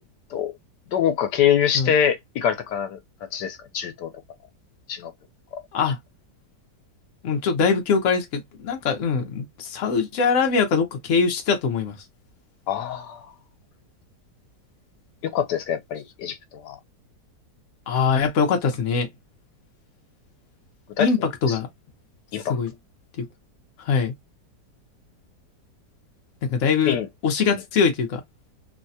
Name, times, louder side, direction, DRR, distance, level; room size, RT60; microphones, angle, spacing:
voice 1, 0.9-3.0 3.3-4.1 4.9-5.1 12.7-13.3 15.2-16.8 21.0-21.1 21.5-21.6 22.3-22.5 26.9-27.1, left 9 dB, 85° left, 1.3 m, -24 dB
voice 2, 7.2-12.0 17.9-19.1 21.0-21.7 22.5-22.7 23.2-23.3 23.8-24.1 26.5-27.0 27.2-28.2, left 5 dB, 55° left, 1.1 m, -22 dB
3.2 x 2.2 x 2.6 m
omnidirectional pair, 1.8 m